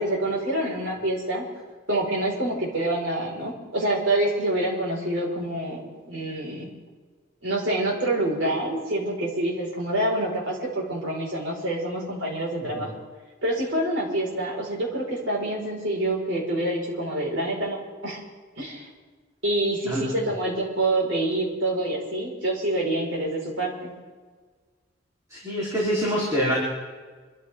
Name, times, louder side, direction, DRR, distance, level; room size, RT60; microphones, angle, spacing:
voice 1, 0.0-1.4 1.9-5.8 6.1-6.7 7.4-12.9 13.4-17.8 18.0-18.2 18.6-18.9 19.4-23.9, right 1 dB, 70° right, -3 dB, 5.2 m, -26 dB
voice 2, 25.3-26.6, equal, 15° right, -7 dB, 3.8 m, -25 dB
26.5 x 14.0 x 3.7 m, 1.4 s
head